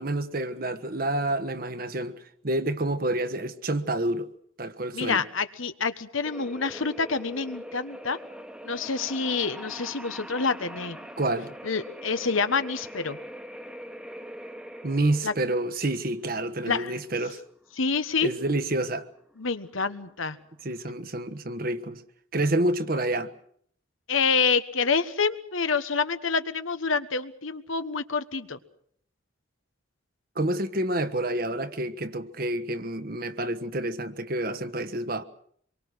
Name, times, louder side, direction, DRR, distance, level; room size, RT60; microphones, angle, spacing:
voice 1, 0.0-4.3 4.6-5.2 11.2-11.5 14.8-17.4 18.2-19.0 20.6-22.0 22.3-23.3 30.3-35.2, right 1 dB, 45° right, 1.3 m, -28 dB
voice 2, 4.9-8.2 8.6-11.0 11.6-13.2 15.2-15.3 16.7-16.9 17.8-18.3 19.4-20.4 24.1-28.6, left 5 dB, 80° left, 1.4 m, -27 dB
sound 1, 6.2-20.8, equal, 5° right, 1.3 m, -43 dB
26.0 x 23.0 x 6.4 m
head